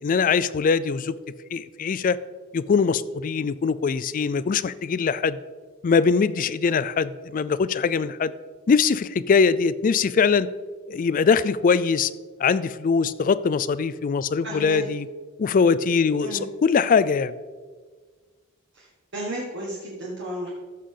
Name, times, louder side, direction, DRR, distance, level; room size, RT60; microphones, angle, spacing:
voice 1, 0.0-1.2 1.5-2.2 2.5-5.4 5.8-8.3 8.7-10.5 10.9-12.1 12.4-15.1 15.4-17.3, left 5 dB, 40° left, 16 dB, 0.3 m, -22 dB
voice 2, 14.4-14.8 16.2-16.4 18.7-18.9 19.1-20.5, right 1 dB, 60° right, -4 dB, 1.6 m, -32 dB
14.0 x 6.6 x 3.8 m, 1.5 s
head